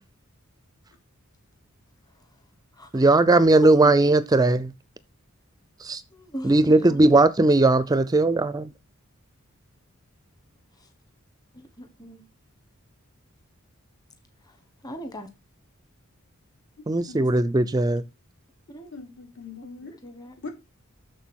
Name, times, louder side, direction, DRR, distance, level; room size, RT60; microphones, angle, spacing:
voice 1, 2.9-4.7 5.8-6.0 6.4-8.7 16.9-18.0, right 2 dB, 20° right, 0.4 m, -18 dB
voice 2, 6.1-7.1 11.5-12.2 14.8-15.3 18.7-18.9 20.0-20.3, equal, 20° left, 1.3 m, -36 dB
voice 3, 16.8-17.3 18.7-19.9 20.4-20.5, left 4 dB, 60° left, 3.2 m, -42 dB
7.1 x 6.6 x 6.2 m
head